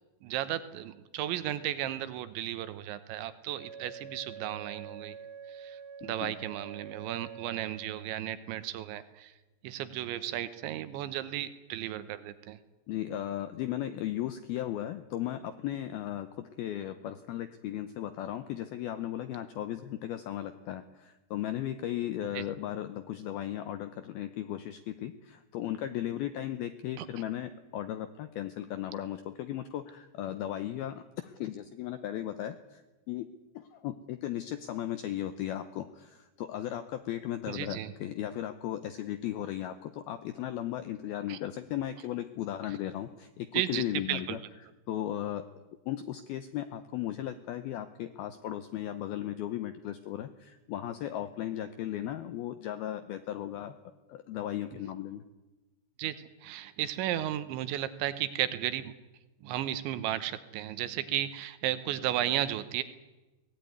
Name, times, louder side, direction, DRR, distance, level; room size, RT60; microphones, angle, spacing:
voice 1, 0.2-5.2 5.5-9.3 9.6-12.6 22.3-22.4 27.0-27.1 37.5-37.9 41.3-41.4 43.5-44.4 56.0-56.2 56.4-58.9 59.4-62.8, right 12 dB, 75° right, 12 dB, 3.2 m, -34 dB
Wind instrument woodwind instrument, 3.5-8.2, right 6 dB, 45° right, 2.7 m, -46 dB
voice 2, 6.0-6.3 12.9-32.8 33.1-33.3 33.5-44.4 44.9-45.5 45.9-53.8 54.1-55.2, left 12 dB, 80° left, 10 dB, 2.2 m, -36 dB
22.5 x 18.5 x 9.5 m, 1.1 s
omnidirectional pair, 5.6 m